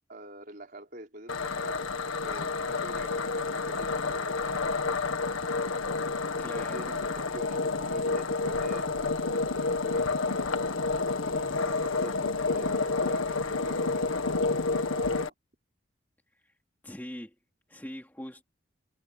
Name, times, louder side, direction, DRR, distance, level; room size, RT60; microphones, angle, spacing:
voice 1, 0.1-1.9 2.2-4.7 6.4-10.2 11.2-14.2 14.5-15.3, right 1 dB, 45° right, 4.7 m, -46 dB
sound 1, 1.3-15.3, left 3 dB, 90° left, 1.7 m, -29 dB
voice 2, 6.4-6.9 16.3-16.5 16.8-17.3 17.7-18.4, equal, 10° left, 2.5 m, -42 dB
head